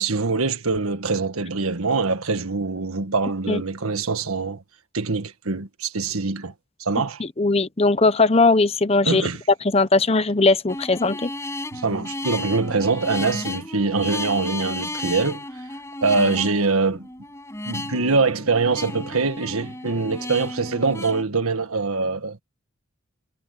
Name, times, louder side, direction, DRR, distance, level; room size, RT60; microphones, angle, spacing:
voice 1, 0.0-4.6 4.9-6.5 6.8-7.2 9.0-9.4 11.7-15.4 16.0-17.1 17.6-22.4, right 4 dB, 90° right, 1.6 m, -23 dB
voice 2, 7.2-9.2 9.6-11.3, left 3 dB, 30° left, 0.9 m, -19 dB
sound 1, 10.7-21.2, left 1 dB, 15° left, 7.2 m, -33 dB
head